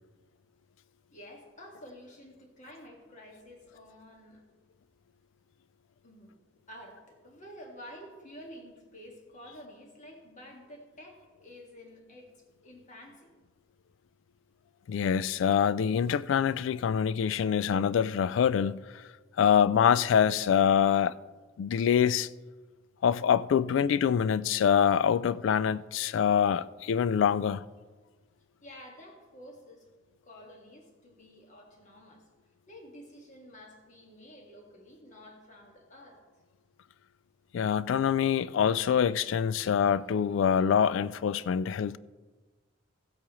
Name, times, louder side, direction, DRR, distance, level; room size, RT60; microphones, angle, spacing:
voice 1, 1.1-4.4 6.0-6.4 6.7-12.3 12.6-13.3 28.6-29.9 30.2-32.2 32.7-36.2, equal, 40° left, 1.8 m, -50 dB
voice 2, 14.9-18.8 19.4-21.2 21.6-22.3 23.0-27.6 37.5-42.0, left 8 dB, 70° left, 0.3 m, -25 dB
16.0 x 8.3 x 3.1 m
head